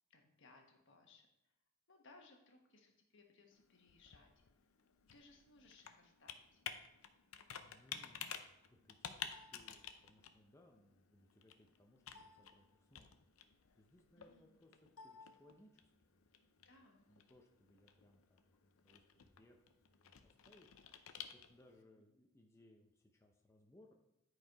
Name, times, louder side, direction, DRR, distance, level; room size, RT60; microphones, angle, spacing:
voice 1, 0.1-1.3 1.9-4.3 5.1-6.6 14.1-14.6 16.6-17.1, left 3 dB, 60° left, 3 dB, 1.3 m, -65 dB
Computer keyboard, 3.5-21.8, left 8 dB, 80° left, 0.6 m, -53 dB
voice 2, 7.5-16.2 16.6-16.7 17.1-20.7 21.3-23.9, left 1 dB, 15° left, 1 dB, 0.7 m, -67 dB
10.5 x 4.7 x 4.7 m, 0.87 s
head